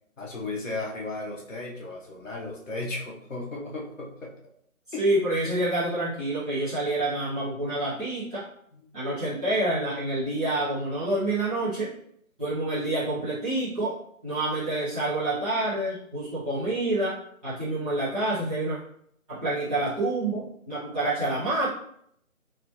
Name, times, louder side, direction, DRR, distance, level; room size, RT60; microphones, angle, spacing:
voice 1, 0.2-4.3 4.9-5.0 8.7-8.9, left 2 dB, 65° left, -2 dB, 1.1 m, -35 dB
voice 2, 5.0-8.4 8.9-11.9 12.4-13.9 14.2-17.1 17.4-18.8 19.3-21.7, right 2 dB, 5° right, -12 dB, 0.9 m, -27 dB
4.2 x 2.1 x 2.9 m, 0.68 s
figure-of-eight pair, 160°, 42 cm